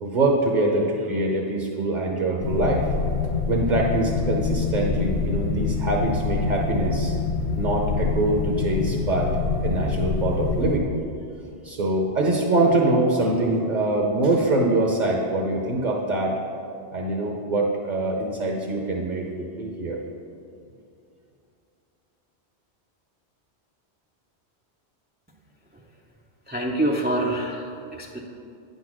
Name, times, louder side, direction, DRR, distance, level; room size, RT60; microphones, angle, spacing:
voice 1, 0.0-2.9 3.5-7.1 7.5-9.3 9.6-10.9 11.6-16.4 16.9-20.0, right 2 dB, 45° right, 0 dB, 0.8 m, -24 dB
sound 1, 2.4-10.8, left 4 dB, 80° left, 0.9 m, -26 dB
voice 2, 26.5-28.2, right 1 dB, 15° right, -2 dB, 0.3 m, -26 dB
9.4 x 4.0 x 6.1 m, 2.6 s
omnidirectional pair, 1.1 m